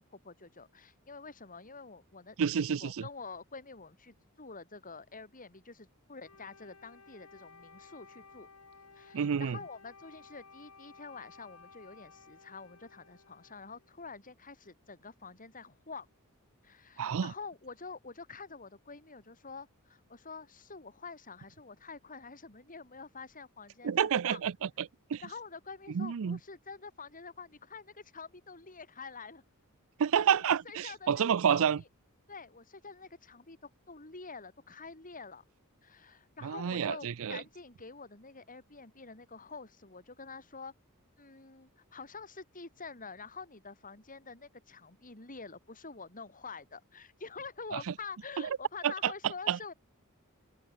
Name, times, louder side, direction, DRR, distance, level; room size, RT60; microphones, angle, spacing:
voice 1, 0.0-2.4 2.7-8.5 8.9-16.1 16.6-24.4 25.2-29.4 30.1-31.7 32.3-35.4 35.8-40.7 41.2-49.7, left 4 dB, 40° left, 4.6 m, -47 dB
voice 2, 2.4-3.0 9.1-9.6 17.0-17.3 23.8-25.2 25.9-26.4 30.0-31.8 36.4-37.4 47.7-47.9 48.4-48.5 48.8-49.1 49.5-49.6, right 8 dB, 65° right, 0.5 m, -29 dB
Wind instrument woodwind instrument, 6.2-14.0, left 4 dB, 80° left, 5.9 m, -56 dB
open air
head